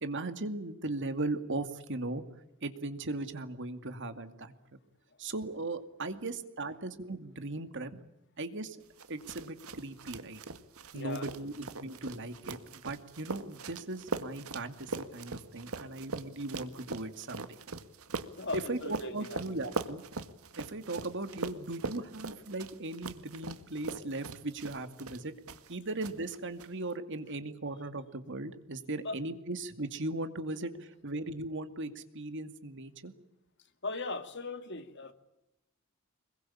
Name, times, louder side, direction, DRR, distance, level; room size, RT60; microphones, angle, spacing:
voice 1, 0.0-2.2 2.6-4.5 5.2-8.0 8.4-8.8 9.1-10.4 10.9-17.6 18.5-20.0 20.6-25.3 25.7-33.1, right 2 dB, 60° right, 9 dB, 2.3 m, -38 dB
sound 1, 9.0-25.7 26.0-26.7, right 3 dB, 85° right, 1.8 m, -41 dB
voice 2, 10.9-11.4 18.4-19.4 29.0-29.1 33.8-35.1, left 3 dB, 55° left, 8 dB, 2.5 m, -38 dB
25.0 x 22.5 x 8.7 m, 0.88 s
head